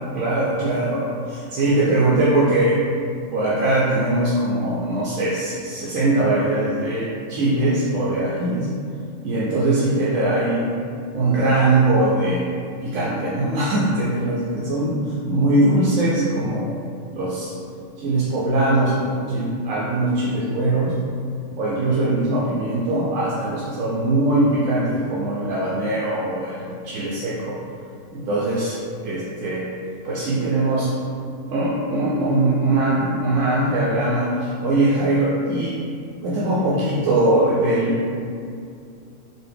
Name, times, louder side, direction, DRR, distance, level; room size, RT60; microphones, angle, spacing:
voice 1, 0.1-2.8 3.3-8.7 9.2-10.8 11.1-12.5 12.8-15.0 15.3-16.7 17.1-17.5 18.0-20.9 21.6-27.6 28.1-28.8 29.0-29.7 30.0-30.9 31.5-35.8 36.2-38.0, right 2 dB, 75° right, -7 dB, 0.9 m, -21 dB
4.0 x 2.2 x 3.3 m, 2.4 s
omnidirectional pair, 1.4 m